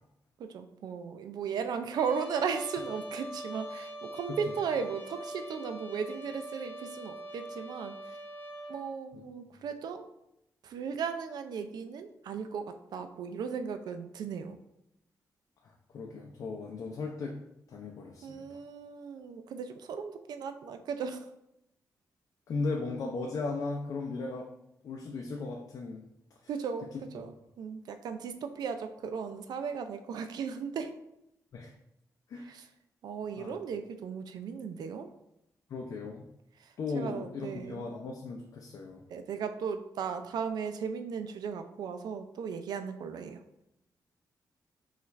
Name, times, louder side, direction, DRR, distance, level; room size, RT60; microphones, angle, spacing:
voice 1, 0.4-8.0 8.7-10.1 10.6-14.6 18.2-21.2 26.5-26.9 27.1-30.9 32.5-32.6 33.0-35.1 36.9-37.9 39.1-43.4, right 6 dB, 80° right, 8 dB, 0.4 m, -36 dB
Trumpet, 1.9-8.8, right 1 dB, 20° left, 0.7 m, -43 dB
voice 2, 15.6-17.4 17.7-18.6 22.5-24.5 24.8-26.0 27.2-27.3 31.5-31.7 32.3-32.5 33.4-33.6 35.7-36.3 36.8-39.0, left 3 dB, 60° left, 0 dB, 0.5 m, -37 dB
5.6 x 2.4 x 3.1 m, 0.82 s
wide cardioid pair, 180°, 7 cm